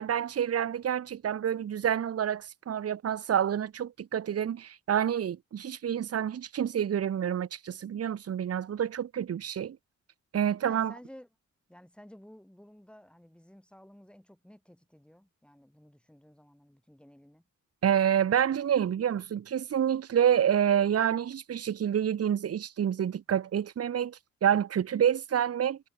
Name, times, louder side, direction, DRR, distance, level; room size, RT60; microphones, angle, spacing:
voice 1, 0.0-9.8 10.3-10.9 17.8-25.8, right 9 dB, 55° right, 0.7 m, -28 dB
voice 2, 10.6-11.3 11.7-17.5, equal, 5° left, 6.1 m, -54 dB
wide cardioid pair, 130°, 30 cm